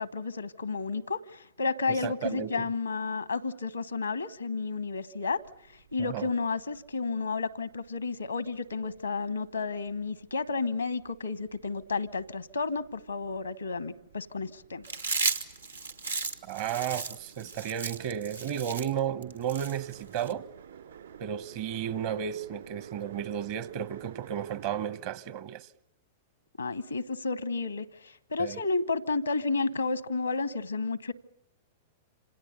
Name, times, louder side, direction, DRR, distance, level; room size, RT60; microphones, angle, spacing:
voice 1, 0.0-5.4 5.7-14.8 26.6-31.1, left 4 dB, 85° left, 1.1 m, -32 dB
voice 2, 1.9-2.7 6.0-6.3 16.4-20.5 21.2-25.7 28.4-28.6, right 9 dB, 50° right, 1.1 m, -33 dB
sound 1, 5.4-24.9, right 8 dB, 70° right, 4.2 m, -53 dB
Chewing mastication, 14.8-20.3, right 4 dB, 85° right, 1.8 m, -34 dB
27.5 x 27.0 x 6.8 m
figure-of-eight pair, 100°, 0 cm